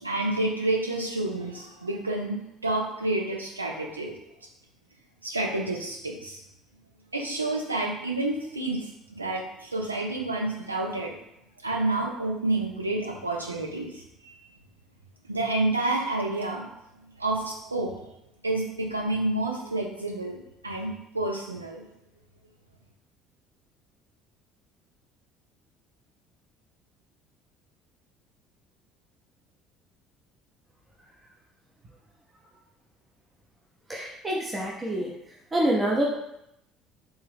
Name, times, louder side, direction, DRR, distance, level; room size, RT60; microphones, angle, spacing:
voice 1, 0.0-2.4 2.6-4.2 5.2-6.4 7.1-11.2 11.6-14.3 15.2-16.6 17.2-18.0 18.4-20.4 20.6-21.8, right 2 dB, 90° right, 0 dB, 0.5 m, -29 dB
voice 2, 33.9-35.1 35.5-36.1, right 1 dB, 20° right, -2 dB, 0.7 m, -26 dB
3.4 x 2.6 x 3.5 m, 0.81 s
figure-of-eight pair, 55°, 0 cm